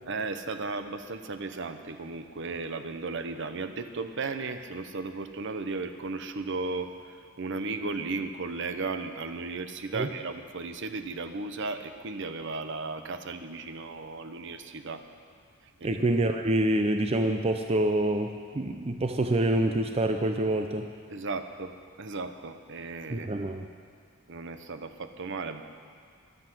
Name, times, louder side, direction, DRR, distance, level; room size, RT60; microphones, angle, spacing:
voice 1, 0.1-15.0 15.8-16.0 21.1-23.3 24.3-25.6, right 3 dB, 55° right, 8 dB, 0.8 m, -35 dB
voice 2, 15.8-20.9 23.1-23.7, right 1 dB, 25° right, 5 dB, 0.5 m, -26 dB
23.0 x 7.8 x 6.1 m, 2.1 s
head